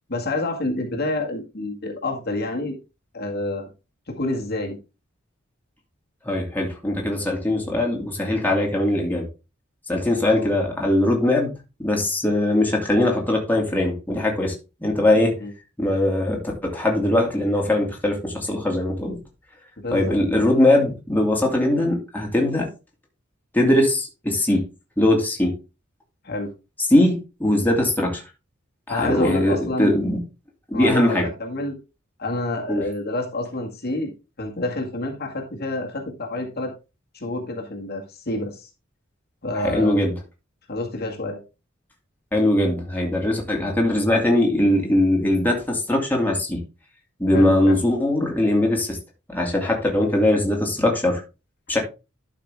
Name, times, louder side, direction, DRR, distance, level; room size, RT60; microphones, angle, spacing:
voice 1, 0.1-2.7 3.1-3.7 4.1-4.8 10.4-10.5 15.3-15.5 19.8-20.2 26.2-26.5 28.9-29.9 30.7-31.8 32.2-34.1 34.4-36.7 37.1-38.7 39.4-40.0 40.7-41.4 47.3-47.8, left 2 dB, 50° left, 1 dB, 2.0 m, -28 dB
voice 2, 6.2-9.3 9.9-11.5 11.8-14.5 14.8-15.3 15.8-19.2 19.9-22.7 23.5-24.6 25.0-25.5 26.9-27.1 27.4-28.2 28.9-30.2 30.7-31.3 32.7-32.8 39.6-40.1 42.3-46.6 47.2-49.0 49.3-51.2 51.7-51.8, left 1 dB, 10° left, -1 dB, 2.5 m, -21 dB
11.5 x 5.8 x 3.5 m, 0.29 s
head